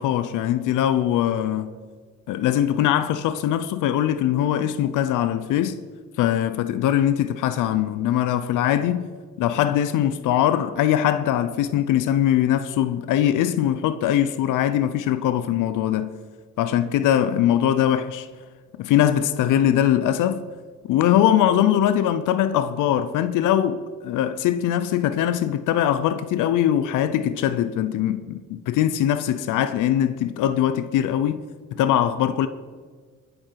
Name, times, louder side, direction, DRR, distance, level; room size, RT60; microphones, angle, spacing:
voice 1, 0.0-1.8 2.3-5.8 6.2-9.1 9.4-16.1 16.6-18.3 18.8-20.4 20.9-31.4 31.8-32.5, left 11 dB, 85° left, 0.7 m, -21 dB
19.5 x 7.9 x 4.7 m
cardioid pair, 90°, 30 cm